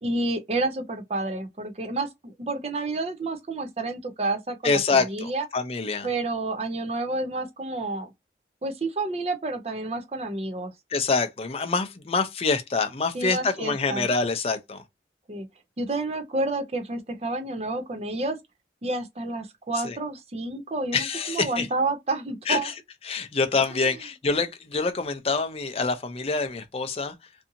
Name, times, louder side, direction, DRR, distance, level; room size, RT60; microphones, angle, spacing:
voice 1, 0.0-5.5 6.0-8.1 8.6-10.7 13.1-14.1 15.3-15.5 15.8-18.4 18.8-22.7 23.7-24.0, right 2 dB, 35° right, 0.5 m, -30 dB
voice 2, 4.6-6.1 10.9-14.8 19.8-20.0 20.9-21.7 22.5-22.7 23.1-27.1, left 4 dB, 35° left, 0.4 m, -26 dB
2.6 x 2.5 x 2.6 m
head